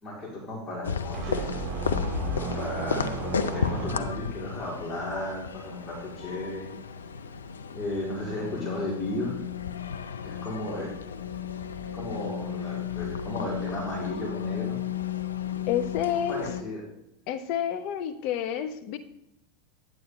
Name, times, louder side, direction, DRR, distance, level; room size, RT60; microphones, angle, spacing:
voice 1, 0.0-1.5 2.3-6.7 7.7-9.3 10.2-10.9 11.9-14.8 16.3-16.8, left 1 dB, 25° left, -4 dB, 3.0 m, -34 dB
sound 1, 0.8-16.6, left 7 dB, 80° left, 0.5 m, -33 dB
sound 2, 1.1-4.3, right 6 dB, 35° right, 2.7 m, -35 dB
voice 2, 15.7-16.4 17.3-19.0, left 9 dB, 50° left, 8 dB, 0.9 m, -29 dB
10.0 x 7.7 x 3.1 m, 0.82 s
figure-of-eight pair, 85°, 0 cm